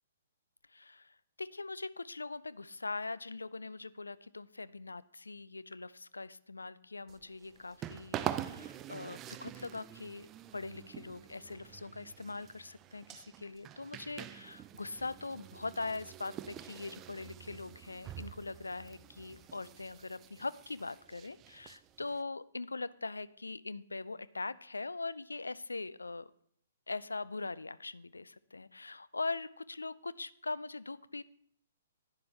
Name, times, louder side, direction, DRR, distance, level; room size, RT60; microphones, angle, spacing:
voice 1, 0.7-10.3 10.5-26.3 26.9-31.2, left 3 dB, 80° left, 18 dB, 0.3 m, -41 dB
sound 1, 7.1-22.2, right 11 dB, 20° right, 0.3 m, -45 dB
11.0 x 9.5 x 3.2 m, 0.66 s
figure-of-eight pair, 120°, 0 cm